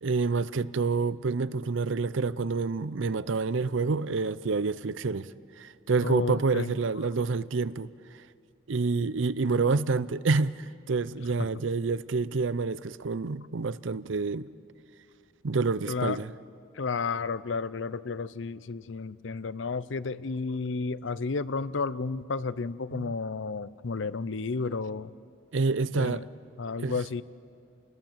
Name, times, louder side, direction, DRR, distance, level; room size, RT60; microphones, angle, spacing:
voice 1, 0.0-5.3 5.6-7.9 8.7-14.5 15.4-16.3 22.9-23.1 25.5-26.2 26.8-26.9, right 4 dB, 65° right, 0.6 m, -28 dB
voice 2, 6.0-6.7 11.4-11.5 15.9-16.2 16.7-25.1 25.9-26.3 26.6-27.2, left 4 dB, 65° left, 0.6 m, -32 dB
29.5 x 20.5 x 7.4 m
head